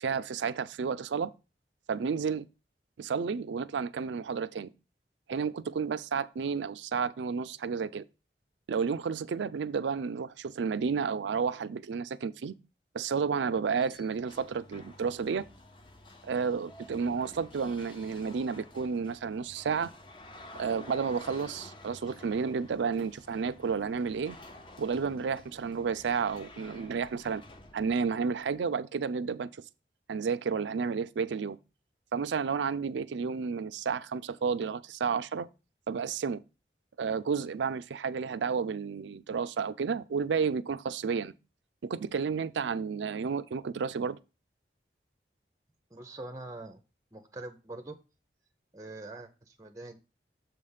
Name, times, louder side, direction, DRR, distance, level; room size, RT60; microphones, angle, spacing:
voice 1, 0.0-1.3 1.9-2.4 3.0-4.7 5.3-8.0 8.7-12.5 12.9-15.5 16.2-19.9 20.6-24.4 24.8-27.4 27.7-29.5 30.1-31.6 32.1-35.5 35.9-36.4 37.0-41.3 41.8-44.2, right 5 dB, 90° right, 0.4 m, -31 dB
sound 1, 13.4-28.6, left 1 dB, 30° left, 0.7 m, -52 dB
voice 2, 45.9-46.8 47.1-48.0 48.7-50.0, right 2 dB, 20° right, 0.5 m, -43 dB
7.3 x 3.3 x 5.5 m
head